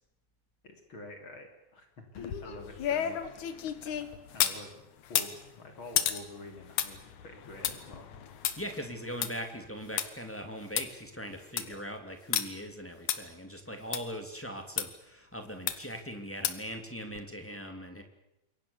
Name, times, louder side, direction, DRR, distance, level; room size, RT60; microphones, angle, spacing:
voice 1, 0.6-4.0 4.3-4.8 5.1-8.1 11.6-11.9, left 2 dB, 40° left, 4 dB, 4.0 m, -48 dB
sound 1, 2.2-4.6 5.0-10.1 10.4-10.5 10.8-10.9 11.3-11.8 12.3-12.4 13.1-13.2 13.9-14.0 14.8-14.9 15.7-16.0 16.4-16.7 17.1-17.2, left 10 dB, 75° left, 2.8 m, -32 dB
voice 2, 8.6-18.0, equal, 5° left, 5 dB, 2.3 m, -40 dB
27.5 x 22.5 x 7.1 m, 0.85 s
omnidirectional pair, 3.4 m